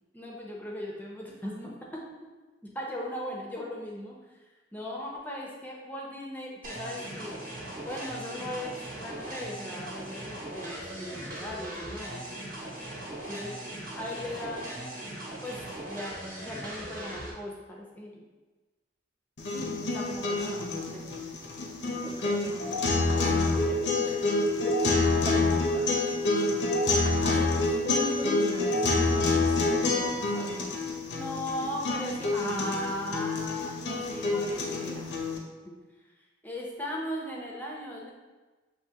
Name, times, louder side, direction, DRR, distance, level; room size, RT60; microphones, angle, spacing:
voice 1, 0.1-2.0 2.6-4.2 4.7-7.4 7.9-12.2 13.3-13.6 13.9-14.9 15.4-18.2 19.9-21.1 21.8-22.8 23.2-24.2 24.6-24.8 27.2-27.6 31.1-35.2 36.4-38.1, left 1 dB, 10° left, -3 dB, 0.6 m, -38 dB
sound 1, 6.6-17.3, right 1 dB, 45° right, 1.1 m, -39 dB
sound 2, 19.4-35.4, left 2 dB, 70° left, 0.7 m, -27 dB
voice 2, 19.5-19.8 22.0-22.4 25.3-25.9 27.2-27.5 27.8-30.7, right 1 dB, 20° right, -3 dB, 0.3 m, -38 dB
6.5 x 2.7 x 2.8 m, 1.2 s
head